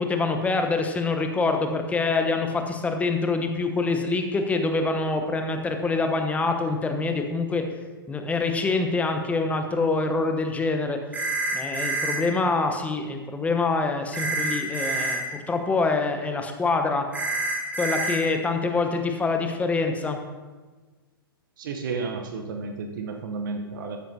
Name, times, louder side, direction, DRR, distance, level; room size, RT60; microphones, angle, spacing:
voice 1, 0.0-7.6 8.1-11.0 11.5-17.0 17.8-20.2, left 3 dB, 10° left, 5 dB, 0.9 m, -25 dB
sound 1, 11.1-12.2 14.1-15.2 17.1-18.2, right 2 dB, 10° right, 2.1 m, -27 dB
voice 2, 21.6-24.0, right 4 dB, 60° right, 5 dB, 1.0 m, -32 dB
13.0 x 9.1 x 2.8 m, 1.3 s
figure-of-eight pair, 110°, 12 cm